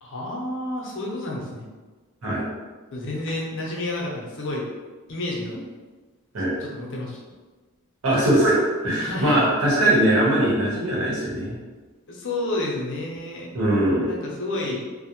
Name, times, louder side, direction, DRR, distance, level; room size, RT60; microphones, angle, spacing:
voice 1, 0.0-1.7 2.9-4.7 5.1-5.6 6.6-7.2 9.0-9.4 12.1-13.5 14.0-14.8, left 2 dB, 55° left, -2 dB, 0.6 m, -30 dB
voice 2, 8.0-11.6 13.5-14.1, right 1 dB, 80° right, -6 dB, 0.9 m, -21 dB
2.5 x 2.0 x 2.9 m, 1.3 s
head